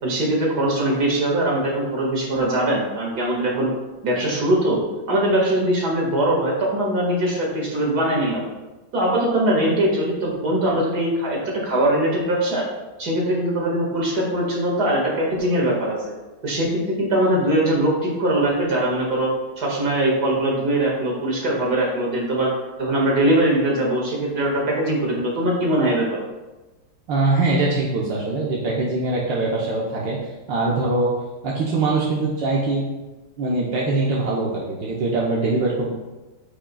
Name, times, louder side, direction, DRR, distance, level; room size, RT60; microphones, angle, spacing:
voice 1, 0.0-3.7 4.0-4.8 5.1-8.5 8.9-12.7 13.0-16.0 16.4-19.3 19.6-22.5 22.8-26.2, right 1 dB, 60° right, -3 dB, 2.5 m, -21 dB
voice 2, 27.1-30.2 30.5-31.1 31.4-32.8 33.4-35.9, right 3 dB, 80° right, -5 dB, 1.7 m, -22 dB
14.0 x 5.1 x 2.3 m, 1.1 s
omnidirectional pair, 2.0 m